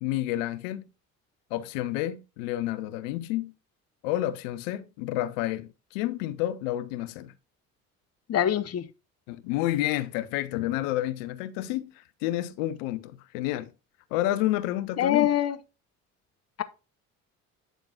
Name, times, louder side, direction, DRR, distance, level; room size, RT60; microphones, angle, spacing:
voice 1, 0.0-0.9 1.5-3.5 4.0-7.3 9.3-13.7 14.1-15.3, left 14 dB, 70° left, 0.8 m, -30 dB
voice 2, 8.3-8.9 15.0-15.5, left 11 dB, 40° left, 0.9 m, -24 dB
9.0 x 6.8 x 2.4 m
figure-of-eight pair, 55°, 41 cm